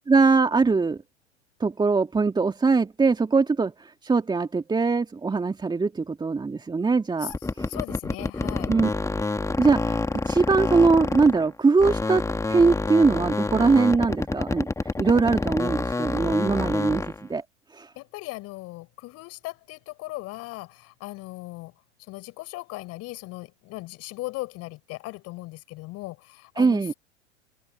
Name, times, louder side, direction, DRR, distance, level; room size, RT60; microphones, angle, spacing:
voice 1, 0.1-1.0 1.6-7.3 7.6-7.7 8.7-8.9 9.6-10.0 10.3-14.7 15.0-17.4 17.7-17.9 26.6-26.9, right 4 dB, 10° right, 2.9 m, -22 dB
voice 2, 7.2-8.7 18.0-21.7 22.0-26.9, left 20 dB, 45° left, 6.9 m, -38 dB
sound 1, 7.3-11.5 11.8-17.2, left 3 dB, 10° left, 2.4 m, -27 dB
figure-of-eight pair, 85°, 35 cm